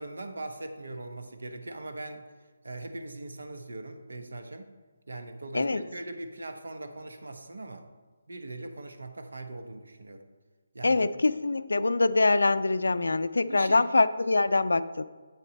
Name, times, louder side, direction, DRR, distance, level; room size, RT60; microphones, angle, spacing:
voice 1, 0.0-2.3 2.6-4.7 5.1-7.9 8.3-10.2 10.7-11.1 13.5-13.9, right 2 dB, 75° right, 7 dB, 1.0 m, -40 dB
voice 2, 10.8-15.0, left 3 dB, 80° left, 14 dB, 0.4 m, -24 dB
8.2 x 6.7 x 4.1 m, 1.4 s
figure-of-eight pair, 155°, 0 cm